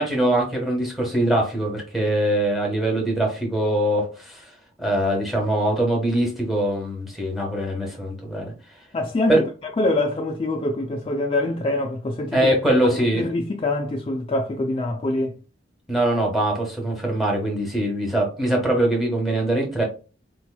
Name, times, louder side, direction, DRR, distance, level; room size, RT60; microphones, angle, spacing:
voice 1, 0.0-4.4 4.8-8.5 9.3-9.4 12.3-13.2 15.9-19.8, right 1 dB, ahead, 1.1 m, -22 dB
voice 2, 8.9-12.5 12.9-15.3, left 2 dB, 30° left, 0.3 m, -25 dB
4.2 x 2.9 x 2.2 m
head